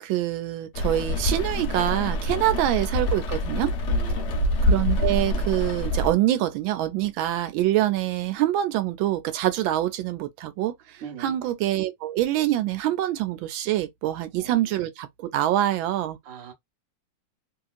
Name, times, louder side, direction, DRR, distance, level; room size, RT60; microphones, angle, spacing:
voice 1, 0.0-3.7 4.6-16.2, right 13 dB, 90° right, 1.4 m, -25 dB
Rain, 0.7-6.1, left 1 dB, 75° left, 0.6 m, -25 dB
voice 2, 3.9-4.3 11.0-11.3 14.0-14.6 16.2-16.5, right 7 dB, 50° right, 1.3 m, -41 dB
2.9 x 2.8 x 2.4 m
omnidirectional pair, 2.1 m